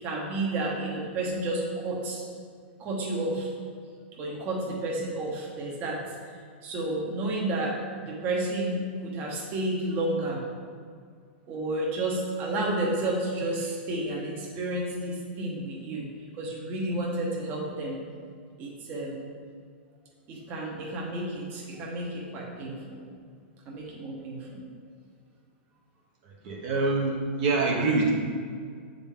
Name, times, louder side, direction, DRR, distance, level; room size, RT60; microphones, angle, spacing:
voice 1, 0.0-2.2 2.8-3.5 4.2-6.0 6.6-7.8 8.1-10.4 11.5-16.1 16.4-17.9 18.6-19.3 20.3-23.0 23.7-24.6, right 2 dB, 30° right, -3 dB, 1.1 m, -31 dB
voice 2, 26.2-28.1, right 3 dB, 50° right, -3 dB, 1.0 m, -25 dB
7.1 x 3.8 x 3.6 m, 2.1 s
hypercardioid pair, 145°, 6 cm